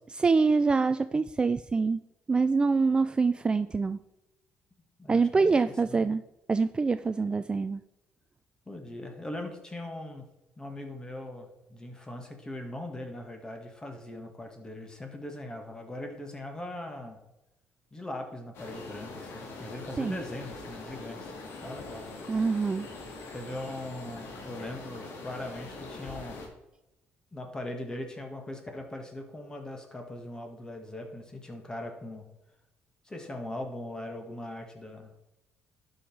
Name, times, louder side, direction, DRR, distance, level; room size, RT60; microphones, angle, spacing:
voice 1, 0.2-2.0 2.3-4.0 5.1-6.2 6.5-7.8 20.0-20.2 22.3-22.9, right 4 dB, 20° right, 12 dB, 0.3 m, -25 dB
voice 2, 5.0-6.0 8.7-10.3 10.6-17.2 17.9-21.3 21.6-22.1 23.3-26.4 27.3-32.3 33.1-35.1, left 1 dB, 15° left, 4 dB, 1.9 m, -40 dB
sound 1, 18.5-26.5, left 3 dB, 75° left, 2.3 m, -43 dB
11.5 x 5.5 x 4.6 m, 0.95 s
cardioid pair, 110°, 4 cm